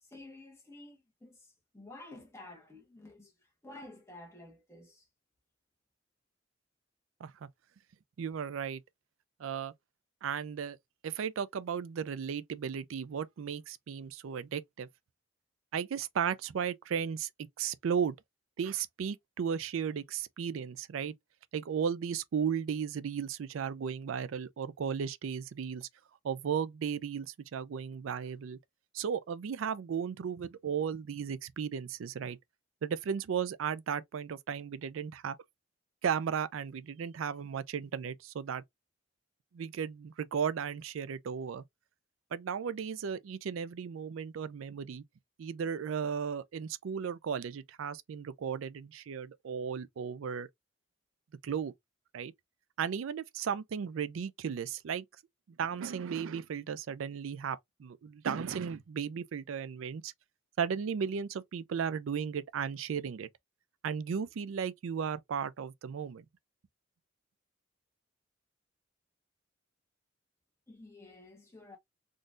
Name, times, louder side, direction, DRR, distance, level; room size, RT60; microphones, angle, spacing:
voice 1, 0.0-5.1 70.7-71.8, left 2 dB, 15° left, 1.2 m, -51 dB
voice 2, 8.2-8.8 9.4-9.7 10.2-10.8 11.0-14.9 15.7-17.3 17.6-18.2 18.6-21.1 21.5-25.9 26.2-28.6 28.9-32.4 32.8-35.4 36.0-38.6 39.5-41.6 42.3-45.0 45.4-50.5 51.4-51.7 52.1-52.3 52.8-55.1 55.6-60.1 60.6-63.3 63.8-66.2, right 7 dB, 90° right, 0.4 m, -35 dB
3.7 x 2.5 x 2.4 m
head